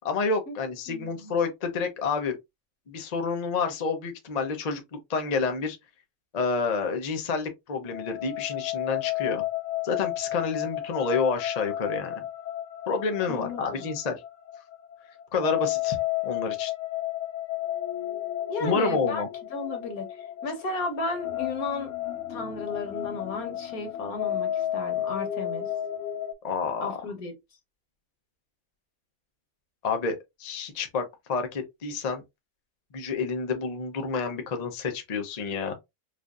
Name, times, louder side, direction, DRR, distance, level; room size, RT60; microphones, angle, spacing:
voice 1, 0.0-2.4 2.9-4.8 5.1-5.8 6.3-9.4 9.8-12.2 12.9-14.2 15.3-16.0 16.2-16.7 18.6-19.3 26.4-26.9 29.8-31.0 31.3-32.2 32.9-35.8, left 4 dB, 40° left, 0.6 m, -29 dB
voice 2, 0.9-1.3 13.3-13.9 18.5-19.2 19.5-21.9 22.3-25.7 26.8-27.3, left 3 dB, 80° left, 1.7 m, -34 dB
sound 1, 7.9-26.3, left 13 dB, 65° left, 1.1 m, -32 dB
4.8 x 2.6 x 2.4 m
omnidirectional pair, 1.5 m